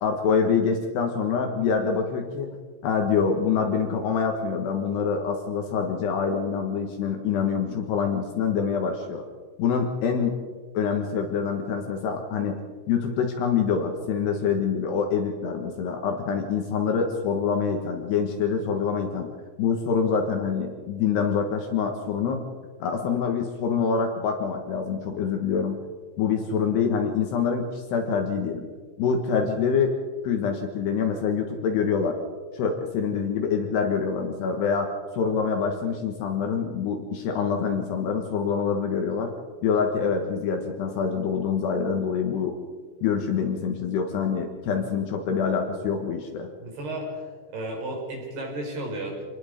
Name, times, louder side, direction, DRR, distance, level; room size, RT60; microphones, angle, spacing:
voice 1, 0.0-2.5 2.8-9.2 9.6-10.4 10.7-12.6 12.9-19.3 19.6-22.4 22.8-25.8 26.2-28.7 29.0-29.9 30.2-32.2 32.5-39.3 39.6-42.6 43.0-46.5, left 6 dB, 65° left, 4 dB, 3.2 m, -25 dB
voice 2, 46.6-47.2 47.5-49.2, right 1 dB, 55° right, 0 dB, 6.5 m, -33 dB
27.0 x 19.5 x 5.2 m, 1.5 s
omnidirectional pair, 5.8 m